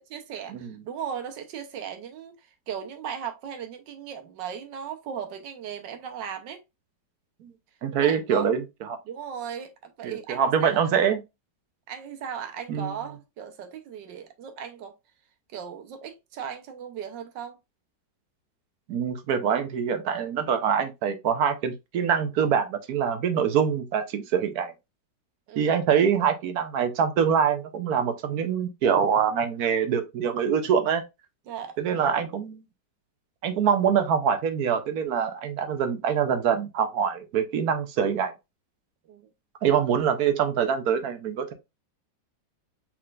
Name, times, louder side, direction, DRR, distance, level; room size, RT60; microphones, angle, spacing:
voice 1, 0.1-6.6 8.0-8.5 9.1-10.9 11.9-14.9 15.5-17.6 25.5-25.7 31.5-31.8 39.1-39.3, right 8 dB, 80° right, 1.5 m, -37 dB
voice 2, 7.8-9.0 10.0-11.2 12.7-12.9 18.9-24.7 25.6-31.0 31.8-32.6 33.4-38.3 39.6-41.5, right 7 dB, 65° right, 1.1 m, -24 dB
4.4 x 4.0 x 2.4 m
omnidirectional pair, 1.9 m